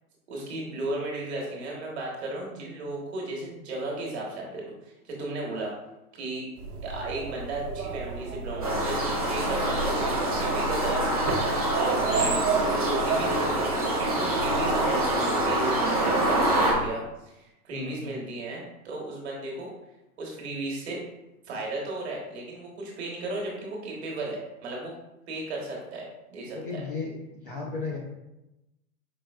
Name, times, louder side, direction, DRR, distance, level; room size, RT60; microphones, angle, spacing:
voice 1, 0.3-5.7 6.1-6.4 6.8-11.0 11.7-19.7 20.2-21.0 21.4-24.9 25.3-26.0 26.3-26.8, right 2 dB, 45° right, -2 dB, 1.2 m, -35 dB
sound 1, 6.6-16.9, right 4 dB, 80° right, 0.8 m, -32 dB
sound 2, 8.6-16.7, right 1 dB, 25° right, 0.4 m, -26 dB
voice 2, 26.5-28.0, left 4 dB, 35° left, -3 dB, 0.5 m, -35 dB
5.0 x 3.3 x 2.3 m, 0.93 s
hypercardioid pair, 175°, 45 cm